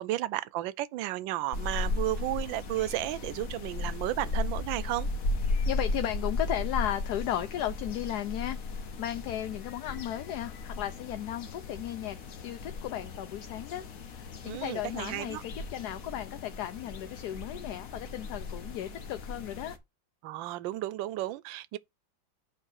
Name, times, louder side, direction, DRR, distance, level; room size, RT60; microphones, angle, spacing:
voice 1, 0.0-5.1 14.4-15.4 20.2-21.8, right 15 dB, 85° right, 1.3 m, -33 dB
sound 1, 1.5-19.8, left 3 dB, 55° left, 1.4 m, -36 dB
voice 2, 5.6-12.2 12.4-13.8 14.1-19.8, left 12 dB, 70° left, 1.1 m, -35 dB
8.2 x 3.1 x 6.3 m
omnidirectional pair, 2.0 m